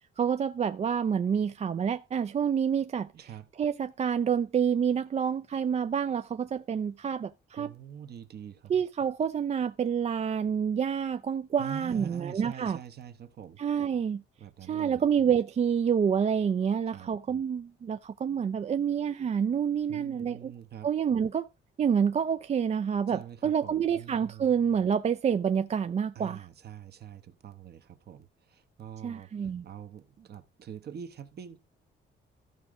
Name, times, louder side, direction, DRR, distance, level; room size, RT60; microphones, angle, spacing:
voice 1, 0.2-3.1 3.6-7.8 8.7-12.8 13.6-14.2 14.7-20.5 20.8-21.5 21.8-26.5 29.0-29.6, right 7 dB, 35° right, 0.4 m, -28 dB
voice 2, 3.1-3.5 7.5-8.7 11.6-13.6 14.4-15.0 16.9-17.1 19.9-20.9 23.1-24.5 26.1-31.6, right 9 dB, 55° right, 1.0 m, -45 dB
14.0 x 5.0 x 3.6 m
cardioid pair, 90°, 20 cm